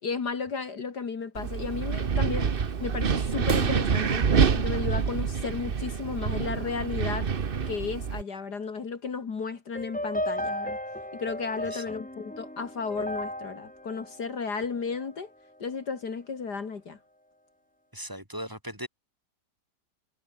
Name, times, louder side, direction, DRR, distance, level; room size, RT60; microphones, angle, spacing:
voice 1, 0.0-2.5 2.8-4.3 4.5-7.3 7.7-10.8 11.1-15.3 15.6-17.0, left 5 dB, 60° left, 2.8 m, -34 dB
Wind, 1.3-8.2, right 6 dB, 35° right, 1.0 m, -27 dB
sound 1, 9.8-15.1, left 1 dB, 5° left, 1.6 m, -35 dB
voice 2, 11.6-12.0 17.9-18.9, equal, 10° right, 6.3 m, -38 dB
omnidirectional pair, 1.9 m